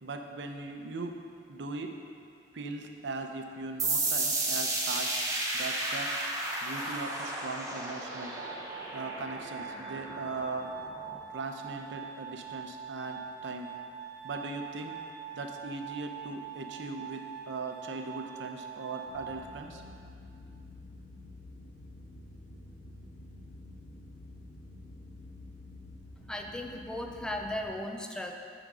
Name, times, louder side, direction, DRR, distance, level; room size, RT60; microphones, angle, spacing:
voice 1, 0.0-1.1 1.5-1.9 2.5-5.1 5.5-6.1 6.6-8.3 8.9-10.7 11.3-13.7 14.2-14.9 15.3-17.2 17.5-19.8, right 3 dB, 85° right, 4 dB, 0.7 m, -39 dB
sound 1, 3.8-11.2, right 2 dB, 20° right, 0.9 m, -33 dB
Glass, 8.0-20.0, right 7 dB, 35° right, 1.8 m, -44 dB
sound 2, 19.1-27.6, left 2 dB, 55° left, 1.8 m, -49 dB
voice 2, 26.3-28.4, left 1 dB, 5° left, 2 dB, 0.4 m, -36 dB
9.0 x 3.8 x 6.1 m, 2.3 s
head